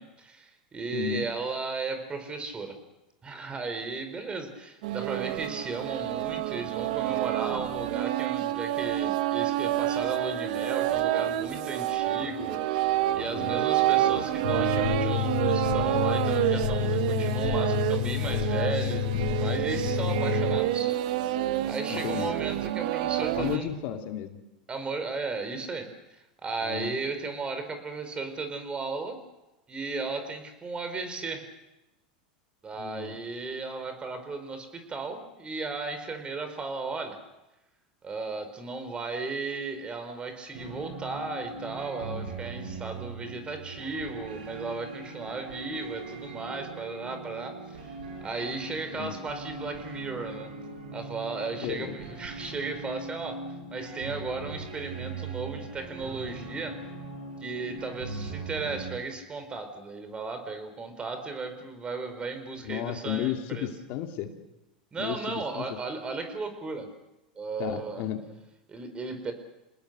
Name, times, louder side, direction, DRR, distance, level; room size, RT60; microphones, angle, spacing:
voice 1, 0.0-2.7 3.2-20.9 21.6-23.7 24.7-29.2 29.7-31.5 32.6-37.2 38.0-48.0 48.2-50.5 50.9-53.4 53.7-56.8 57.4-63.7 64.9-66.9 67.4-68.0 68.7-69.3, right 3 dB, 25° right, 8 dB, 4.5 m, -35 dB
voice 2, 0.9-1.3 13.3-13.6 21.9-22.4 23.2-24.4 26.6-27.0 32.8-33.2 49.0-49.1 51.6-51.9 62.6-64.3 65.0-65.6 67.6-68.2, left 11 dB, 55° left, 4 dB, 2.5 m, -33 dB
sound 1, 4.8-23.6, right 14 dB, 65° right, 1.2 m, -28 dB
sound 2, 14.4-20.6, left 12 dB, 75° left, 4.6 m, -29 dB
sound 3, 40.5-59.0, right 3 dB, 80° right, 7.5 m, -40 dB
28.0 x 19.5 x 6.7 m, 0.97 s
hypercardioid pair, 100°, 5 cm